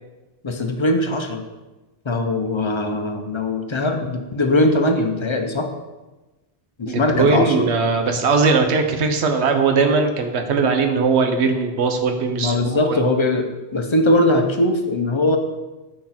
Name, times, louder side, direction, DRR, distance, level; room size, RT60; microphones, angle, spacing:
voice 1, 0.4-1.4 2.0-5.7 6.8-7.7 12.4-15.4, left 1 dB, 30° left, 5 dB, 0.6 m, -20 dB
voice 2, 6.9-12.9, right 4 dB, 75° right, 5 dB, 1.1 m, -19 dB
6.5 x 6.0 x 4.3 m, 1.1 s
omnidirectional pair, 1.2 m